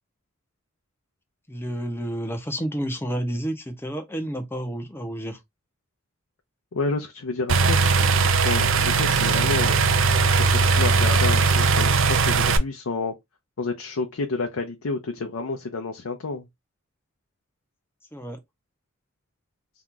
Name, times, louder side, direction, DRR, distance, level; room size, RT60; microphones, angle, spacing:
voice 1, 1.5-5.4 18.1-18.4, right 1 dB, 10° left, 0.7 m, -30 dB
voice 2, 6.7-10.0 10.5-13.1 13.6-16.5, left 3 dB, 90° left, 0.6 m, -30 dB
sound 1, 7.5-12.6, right 4 dB, 65° right, 0.5 m, -19 dB
2.9 x 2.4 x 3.6 m
head